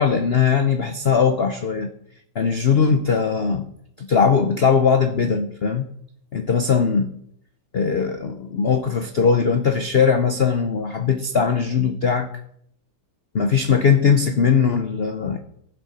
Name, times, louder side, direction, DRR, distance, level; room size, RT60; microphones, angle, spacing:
voice 1, 0.0-1.9 2.4-3.7 4.0-5.9 6.3-7.1 7.7-12.3 13.3-15.4, left 6 dB, 80° left, 7 dB, 0.5 m, -20 dB
14.5 x 7.8 x 5.7 m, 0.72 s
omnidirectional pair, 2.2 m